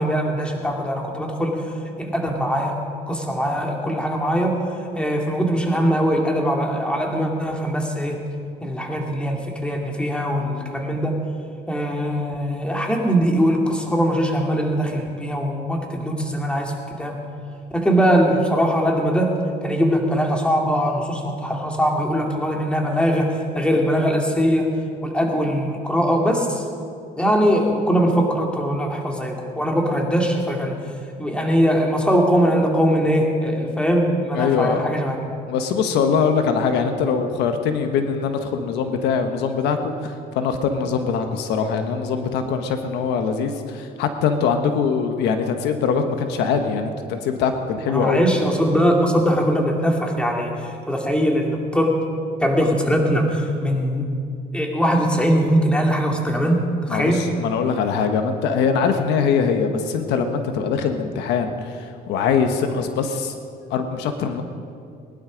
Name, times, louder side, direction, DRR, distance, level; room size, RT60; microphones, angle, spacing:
voice 1, 0.0-1.6 2.0-2.8 3.1-8.2 8.6-11.2 11.7-17.2 17.7-24.7 25.0-26.6 27.2-30.8 31.2-35.2 47.9-52.0 52.4-54.1 54.5-57.2, equal, 5° left, 1 dB, 2.3 m, -21 dB
voice 2, 34.3-34.8 35.5-48.2 56.9-63.3 63.7-64.4, left 6 dB, 90° left, 7 dB, 1.3 m, -22 dB
19.5 x 11.5 x 5.2 m, 2.4 s
cardioid pair, 110°, 17 cm